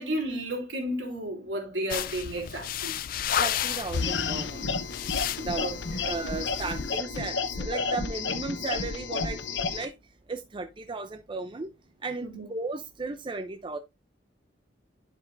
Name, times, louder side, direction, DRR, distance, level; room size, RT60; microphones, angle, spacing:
voice 1, 0.0-3.0 5.6-6.1 12.2-12.5, right 1 dB, 75° right, 3.0 m, -33 dB
sound 1, 1.9-7.0, left 9 dB, 50° left, 0.4 m, -32 dB
voice 2, 3.4-4.8 5.4-5.7 6.0-9.9 10.3-11.7 12.0-13.8, right 3 dB, 25° right, 0.5 m, -35 dB
sound 2, 3.9-9.9, left 4 dB, 70° left, 0.9 m, -31 dB
10.5 x 5.0 x 2.5 m
head